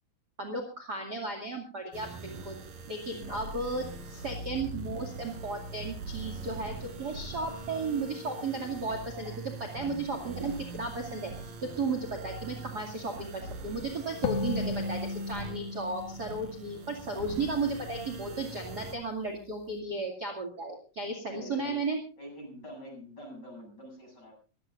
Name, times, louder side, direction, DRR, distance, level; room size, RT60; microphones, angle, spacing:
voice 1, 0.4-2.6 2.9-9.3 9.7-11.3 11.8-22.0, right 3 dB, 30° right, 4 dB, 2.4 m, -34 dB
sound 1, 1.9-19.0, right 3 dB, 80° right, 4.6 m, -42 dB
voice 2, 3.1-3.4 8.9-9.0 21.2-21.8 22.2-24.3, equal, 30° left, 2 dB, 8.2 m, -45 dB
sound 2, 14.2-17.7, left 3 dB, 85° left, 2.9 m, -36 dB
24.5 x 16.0 x 2.6 m, 0.34 s
omnidirectional pair, 4.0 m